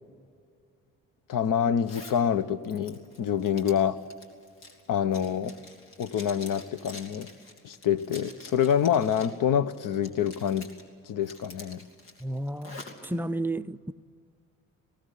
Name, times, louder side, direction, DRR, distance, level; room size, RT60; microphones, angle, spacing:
voice 1, 1.3-4.0 4.9-5.5 6.0-7.3 7.6-10.7 11.1-11.8, left 8 dB, 55° left, 1.0 m, -26 dB
Zipper (clothing), 1.8-2.2 2.6-9.4 9.7-10.8 11.2-13.1, left 2 dB, 75° left, 2.8 m, -47 dB
voice 2, 12.2-13.9, right 1 dB, 5° right, 0.4 m, -32 dB
19.5 x 17.5 x 8.5 m
hypercardioid pair, 50°, 39 cm